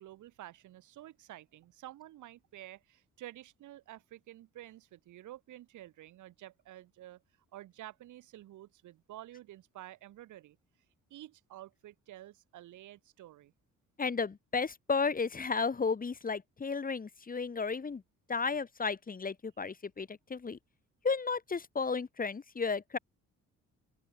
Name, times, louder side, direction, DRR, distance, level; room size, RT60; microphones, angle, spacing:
voice 1, 0.0-7.2 7.5-10.6 11.1-13.5, right 14 dB, 80° right, 2.5 m, -50 dB
voice 2, 14.0-18.0 18.3-20.6 21.0-23.0, left 5 dB, 30° left, 1.6 m, -33 dB
open air
cardioid pair, 90°, 30 cm